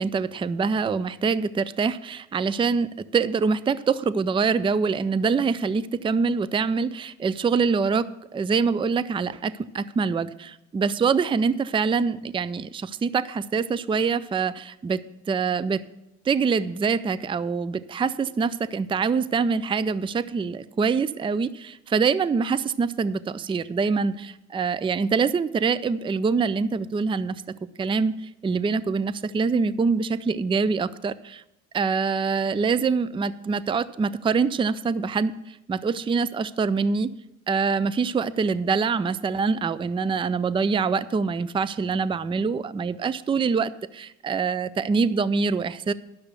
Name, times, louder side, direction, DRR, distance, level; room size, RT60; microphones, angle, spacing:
voice 1, 0.0-15.0 15.3-15.8 16.3-27.4 27.8-28.1 28.4-31.4 31.7-37.1 37.5-45.9, right 5 dB, 20° right, 16 dB, 0.4 m, -25 dB
10.0 x 7.0 x 6.6 m, 0.85 s
cardioid pair, 90°, 30 cm